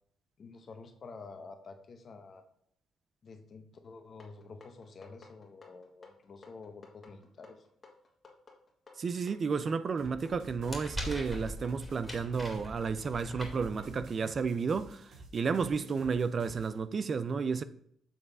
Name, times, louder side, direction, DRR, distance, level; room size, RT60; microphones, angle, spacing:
voice 1, 0.4-2.4 3.2-7.7, left 4 dB, 50° left, 1.0 m, -49 dB
sound 1, 4.2-14.0, left 4 dB, 30° left, 1.8 m, -56 dB
voice 2, 9.0-17.6, right 5 dB, 45° right, 0.4 m, -32 dB
sound 2, 10.0-16.8, right 2 dB, 75° right, 2.4 m, -52 dB
sound 3, 10.3-14.3, equal, 5° left, 2.1 m, -42 dB
7.3 x 3.2 x 6.0 m
cardioid pair, 90°, 0 cm